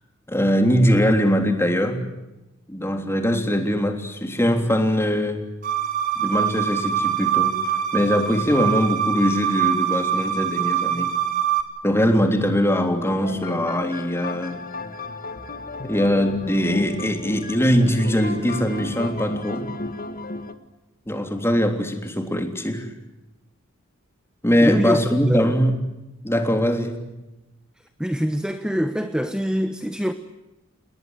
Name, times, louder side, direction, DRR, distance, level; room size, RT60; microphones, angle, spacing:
voice 1, 0.3-2.1 2.7-5.4 6.2-11.1 11.8-14.6 15.8-19.7 21.1-22.9 24.4-25.7 26.2-27.0, equal, 10° left, 5 dB, 3.4 m, -21 dB
sound 1, 5.6-11.6, right 9 dB, 40° right, 3.7 m, -24 dB
sound 2, 13.0-20.5, left 2 dB, 45° left, 2.0 m, -33 dB
voice 2, 24.6-25.6 28.0-30.1, equal, 5° right, 9 dB, 1.1 m, -25 dB
30.0 x 20.0 x 8.1 m, 0.98 s
head